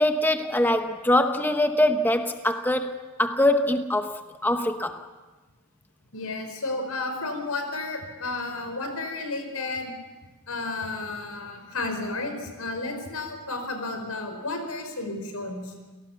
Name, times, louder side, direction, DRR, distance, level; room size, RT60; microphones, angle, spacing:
voice 1, 0.0-2.9 3.2-5.0, left 1 dB, 10° left, 6 dB, 0.9 m, -23 dB
voice 2, 6.1-9.9 10.5-15.7, left 2 dB, 80° left, 6 dB, 4.9 m, -32 dB
28.5 x 18.0 x 7.1 m, 1.2 s
head